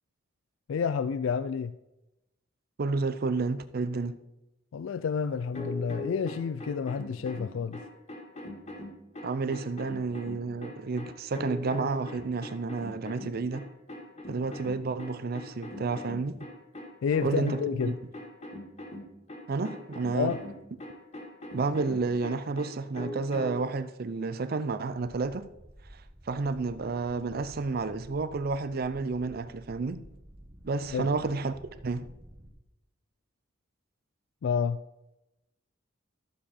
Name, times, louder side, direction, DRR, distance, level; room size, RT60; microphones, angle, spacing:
voice 1, 0.7-1.7 4.7-7.8 17.0-18.0 20.1-20.4 30.9-31.1 34.4-34.8, left 6 dB, 80° left, 0.3 m, -29 dB
voice 2, 2.8-4.2 9.2-13.6 14.3-16.4 17.2-17.6 17.8-17.9 19.5-20.3 21.5-25.5 26.3-30.0 30.6-31.6 31.8-32.1, right 3 dB, 50° right, 0.5 m, -30 dB
sound 1, 5.5-23.7, left 1 dB, 35° left, 1.8 m, -41 dB
sound 2, 25.5-32.5, equal, 30° right, 1.6 m, -52 dB
12.5 x 7.4 x 4.3 m
head